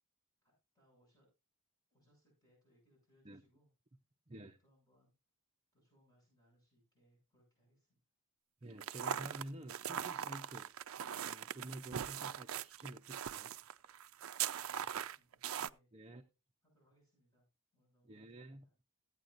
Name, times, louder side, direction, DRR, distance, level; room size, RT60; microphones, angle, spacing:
voice 1, 0.4-1.3 1.9-3.7 4.3-5.1 5.7-8.0 14.5-15.9 16.6-17.4 17.7-18.5, equal, 15° left, 7.2 m, -73 dB
voice 2, 4.3-4.6 8.6-10.7 11.2-13.5 15.9-16.2 18.0-18.7, right 1 dB, 25° right, 0.7 m, -50 dB
sound 1, 8.8-15.7, right 9 dB, 65° right, 0.4 m, -41 dB
16.0 x 8.9 x 2.6 m
head